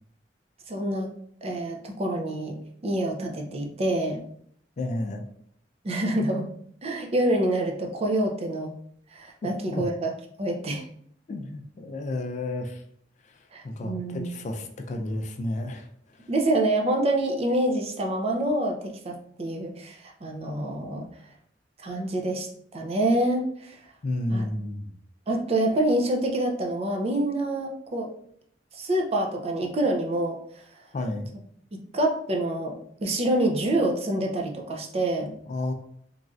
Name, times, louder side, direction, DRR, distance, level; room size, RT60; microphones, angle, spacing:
voice 1, 0.7-1.1 1.4-2.6 2.8-4.2 5.8-6.5 6.8-8.8 9.1-10.1 10.4-10.8 13.5-14.3 16.3-21.0 21.8-22.5 22.7-23.8 24.3-24.5 25.3-28.1 28.7-30.4 31.9-35.3, right 1 dB, 35° right, 1 dB, 0.5 m, -26 dB
voice 2, 4.8-5.2 9.4-9.9 11.3-12.8 13.2-13.4 13.6-15.9 16.2-16.3 24.0-24.9 30.9-31.3 35.5-35.7, left 1 dB, 40° left, 4 dB, 0.3 m, -31 dB
3.1 x 2.6 x 2.3 m, 0.65 s
head